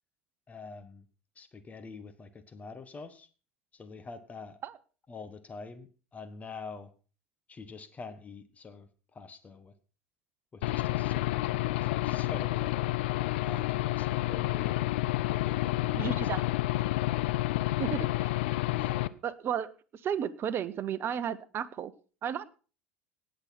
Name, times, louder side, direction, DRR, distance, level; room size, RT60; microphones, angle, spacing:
voice 1, 0.5-1.0 1.3-3.3 3.7-4.6 5.1-6.9 7.5-9.7 10.5-12.9 13.4-14.9 15.2-16.5 18.7-19.0, left 4 dB, 20° left, 10 dB, 1.4 m, -46 dB
Aircraft / Engine, 10.6-19.1, left 16 dB, 60° left, 0.7 m, -29 dB
voice 2, 16.0-16.4 17.8-18.3 19.2-19.7 20.0-21.9 22.2-22.5, right 8 dB, 35° right, 14 dB, 1.0 m, -33 dB
18.5 x 6.7 x 6.0 m, 0.37 s
figure-of-eight pair, 75°, 7 cm